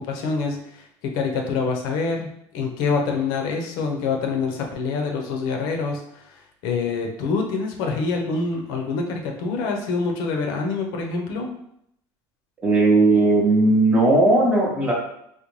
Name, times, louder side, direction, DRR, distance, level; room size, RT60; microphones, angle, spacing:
voice 1, 0.0-2.3 2.5-11.5, left 4 dB, 65° left, 2 dB, 0.6 m, -26 dB
voice 2, 12.6-14.9, right 2 dB, 15° right, -2 dB, 0.6 m, -17 dB
3.8 x 2.1 x 3.0 m, 0.73 s
cardioid pair, 175°, 8 cm